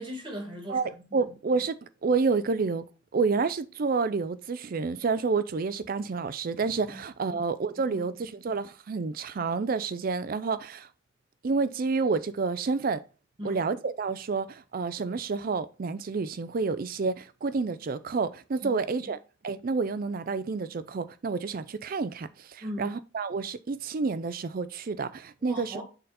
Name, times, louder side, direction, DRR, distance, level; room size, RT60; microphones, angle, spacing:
voice 1, 0.0-0.8 1.1-1.2 6.9-7.0 7.3-7.4 7.8-8.1 13.4-13.6 18.6-18.8 22.6-22.9 25.4-25.8, equal, 25° right, 1.6 m, -38 dB
voice 2, 0.7-2.8 3.1-10.9 11.4-13.0 13.4-19.2 19.4-25.8, right 4 dB, 45° right, 0.4 m, -29 dB
6.6 x 4.0 x 4.1 m
head